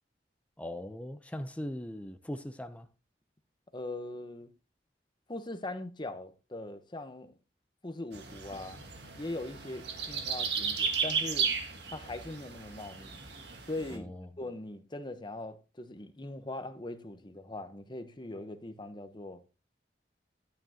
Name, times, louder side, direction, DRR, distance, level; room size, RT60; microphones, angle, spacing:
voice 1, 0.6-2.9 13.9-14.4, left 1 dB, 10° left, 0.6 m, -40 dB
voice 2, 3.7-4.5 5.3-7.3 7.8-8.8 9.1-11.5 11.9-13.2 13.7-14.1 14.4-19.4, left 2 dB, 25° left, 0.9 m, -41 dB
sound 1, 8.1-14.0, right 6 dB, 75° right, 1.6 m, -35 dB
11.5 x 9.1 x 2.8 m
head